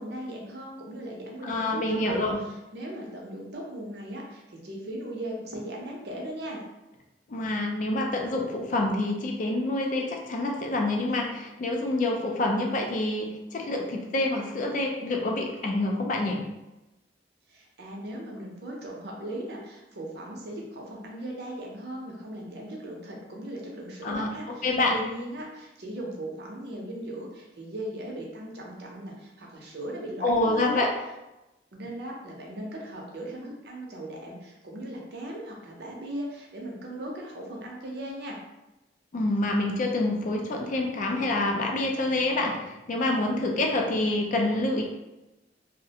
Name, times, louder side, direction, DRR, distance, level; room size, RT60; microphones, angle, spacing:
voice 1, 0.0-2.3 2.7-6.7 17.5-30.9 31.7-38.4, right 1 dB, 65° right, -1 dB, 0.6 m, -38 dB
voice 2, 1.4-2.4 7.3-16.4 24.0-25.0 30.2-30.9 39.1-44.8, left 2 dB, 45° left, 1 dB, 0.4 m, -27 dB
2.4 x 2.1 x 2.7 m, 0.99 s
head